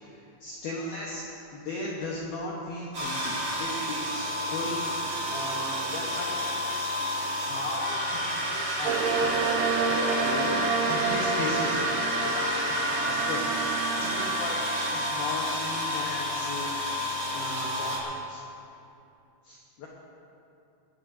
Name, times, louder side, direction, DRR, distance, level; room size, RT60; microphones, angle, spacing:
voice 1, 0.1-1.2 1.5-4.8 5.3-6.9 7.3-11.8 12.2-13.4 14.0-16.7 17.3-18.4 19.5-19.9, left 2 dB, 65° left, -4 dB, 2.5 m, -37 dB
sound 1, 2.9-18.0, left 1 dB, 35° right, 2.3 m, -30 dB
sound 2, 8.9-16.8, right 5 dB, 80° right, 3.6 m, -30 dB
19.5 x 16.0 x 2.8 m, 2.7 s
omnidirectional pair, 5.8 m